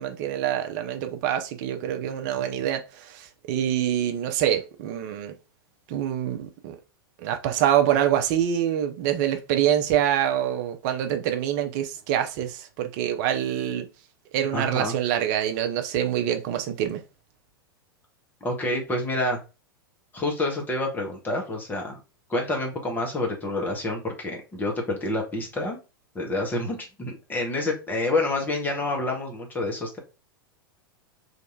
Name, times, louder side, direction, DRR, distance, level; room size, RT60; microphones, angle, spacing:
voice 1, 0.0-5.3 5.9-6.8 7.2-13.9 14.3-17.0, right 10 dB, 45° right, 0.7 m, -25 dB
voice 2, 14.5-15.0 18.4-19.4 20.1-22.0 22.3-25.8 26.1-30.0, left 2 dB, 15° left, 1.4 m, -28 dB
3.3 x 2.8 x 4.0 m
figure-of-eight pair, 95°, 12 cm